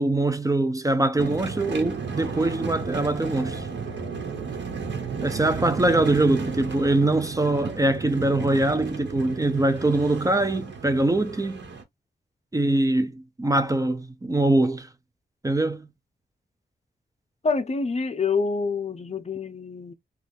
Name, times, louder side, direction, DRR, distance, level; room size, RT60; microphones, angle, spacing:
voice 1, 0.0-3.7 5.2-11.6 12.5-14.9 15.4-15.9, right 2 dB, 20° right, 0.5 m, -23 dB
sound 1, 1.2-11.8, right 5 dB, 75° right, 1.1 m, -33 dB
voice 2, 17.4-19.9, left 4 dB, 35° left, 0.5 m, -26 dB
2.5 x 2.4 x 3.4 m
cardioid pair, 60°, 18 cm